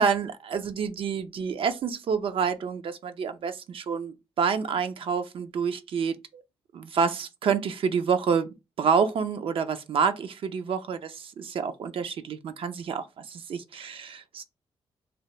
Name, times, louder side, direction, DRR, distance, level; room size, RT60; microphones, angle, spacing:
voice 1, 0.0-6.4 6.7-8.5 8.8-14.4, right 6 dB, 60° right, 0.4 m, -28 dB
2.8 x 2.2 x 3.0 m
cardioid pair, 85°, 10 cm